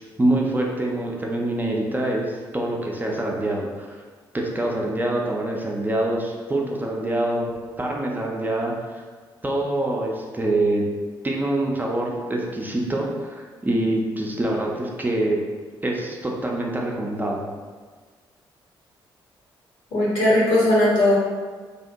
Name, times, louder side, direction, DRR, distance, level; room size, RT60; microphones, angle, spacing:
voice 1, 0.0-4.0 4.3-7.5 7.8-9.0 9.4-10.8 11.2-15.4 15.8-17.4, right 1 dB, 15° right, -2 dB, 0.4 m, -25 dB
voice 2, 19.9-21.2, left 1 dB, 60° left, -6 dB, 0.9 m, -18 dB
2.7 x 2.0 x 2.6 m, 1.5 s
figure-of-eight pair, 40°, 12 cm